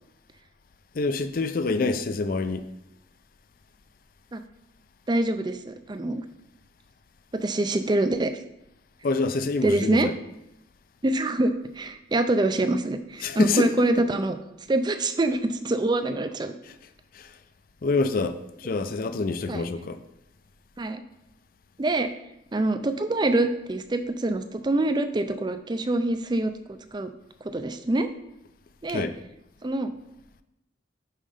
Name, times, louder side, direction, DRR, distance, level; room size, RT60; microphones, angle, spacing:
voice 1, 0.9-2.7 9.0-10.1 13.2-13.9 16.6-16.7 17.1-17.3 17.8-20.0 28.9-29.2, left 3 dB, 50° left, 0.4 m, -26 dB
voice 2, 5.1-6.2 7.3-8.3 9.6-10.1 11.0-14.4 14.7-16.5 19.5-19.6 20.8-21.0 21.8-22.1 22.5-26.5 26.9-27.1 27.5-28.1 28.8-29.1 29.6-29.9, right 2 dB, 25° right, 0.4 m, -25 dB
5.6 x 5.2 x 4.9 m
head